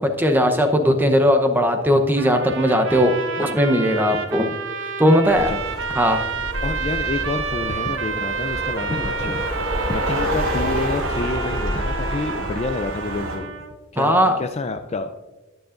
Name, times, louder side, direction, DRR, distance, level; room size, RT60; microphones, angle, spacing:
voice 1, 0.2-3.1 3.4-4.5 5.0-5.5 5.9-6.2 14.0-14.4, equal, 10° right, 5 dB, 0.8 m, -18 dB
sound 1, 2.2-13.7, right 5 dB, 55° right, 0.8 m, -30 dB
sound 2, 5.2-13.4, equal, 80° right, 3.9 m, -28 dB
voice 2, 6.6-13.5 13.9-15.1, left 3 dB, 30° left, 8 dB, 0.4 m, -28 dB
20.5 x 7.0 x 2.5 m, 1.2 s
head